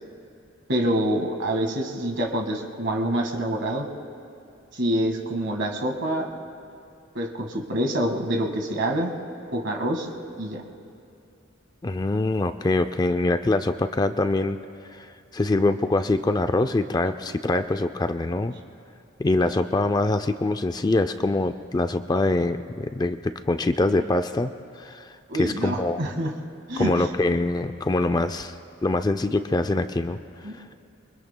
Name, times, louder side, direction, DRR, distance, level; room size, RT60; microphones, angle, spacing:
voice 1, 0.7-3.9 4.7-6.3 7.2-9.1 9.5-10.1 10.4-10.6 25.3-26.3 26.7-27.1 30.4-30.8, right 1 dB, 60° right, 2 dB, 1.7 m, -26 dB
voice 2, 11.8-14.6 14.9-18.5 19.2-24.5 24.8-26.0 26.8-30.2, left 2 dB, 20° left, 9 dB, 0.3 m, -24 dB
27.0 x 24.0 x 2.2 m, 2.5 s
head